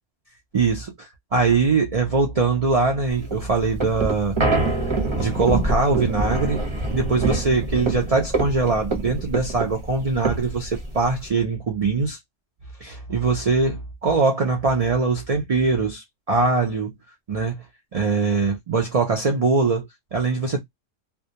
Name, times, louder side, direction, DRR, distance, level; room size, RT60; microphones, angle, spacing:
voice 1, 0.5-4.4 5.2-6.6 6.9-12.2 12.8-17.0 17.3-17.6 17.9-20.6, right 4 dB, 70° right, 0.3 m, -22 dB
sound 1, 3.2-11.3, right 2 dB, 30° right, 0.7 m, -25 dB
2.2 x 2.1 x 2.7 m
omnidirectional pair, 1.3 m